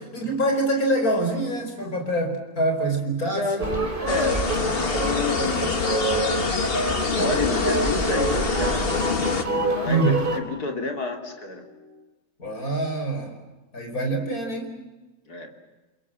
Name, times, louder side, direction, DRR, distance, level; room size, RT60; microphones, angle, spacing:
voice 1, 0.0-3.5 9.9-10.2 12.4-13.4 13.7-14.7, right 2 dB, 70° left, 4 dB, 5.2 m, -25 dB
voice 2, 3.3-5.8 6.8-8.9 9.2-11.6 15.3-15.5, left 4 dB, 85° left, 4 dB, 3.4 m, -31 dB
sound 1, 3.6-10.4, right 2 dB, 35° right, 3.3 m, -26 dB
sound 2, 4.1-9.4, left 5 dB, 40° left, 1.6 m, -26 dB
sound 3, 7.3-12.1, left 1 dB, 65° right, 3.5 m, -41 dB
29.5 x 22.0 x 7.6 m, 1.2 s
omnidirectional pair, 1.6 m